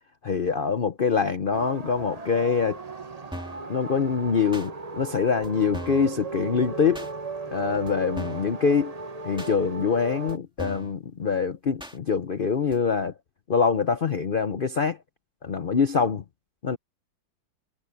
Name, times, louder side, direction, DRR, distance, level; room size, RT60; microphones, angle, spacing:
voice 1, 0.2-2.8 3.7-7.1 7.5-8.9 9.2-13.1 13.5-15.0 15.4-16.2 16.6-16.8, left 5 dB, 90° left, 0.4 m, -24 dB
sound 1, 1.5-10.4, right 3 dB, 30° right, 0.8 m, -36 dB
sound 2, 3.3-3.7 4.5-4.7 5.4-5.5 5.7-6.1 6.9-7.1 7.9-8.0 8.2-8.5 9.4-9.5 10.3-10.4 10.6-10.9 11.8-12.0 12.7-12.8, equal, 5° right, 1.5 m, -38 dB
omnidirectional pair, 2.1 m